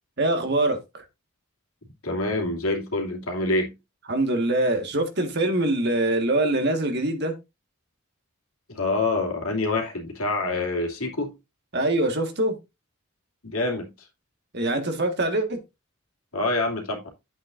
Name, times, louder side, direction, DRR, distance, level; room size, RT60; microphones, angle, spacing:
voice 1, 0.2-1.0 4.1-7.3 11.7-12.6 14.5-15.6, right 1 dB, 50° right, 1.6 m, -24 dB
voice 2, 1.8-3.7 8.7-11.3 13.4-13.9 16.3-17.1, left 2 dB, 75° left, 2.5 m, -26 dB
9.8 x 8.0 x 2.6 m
head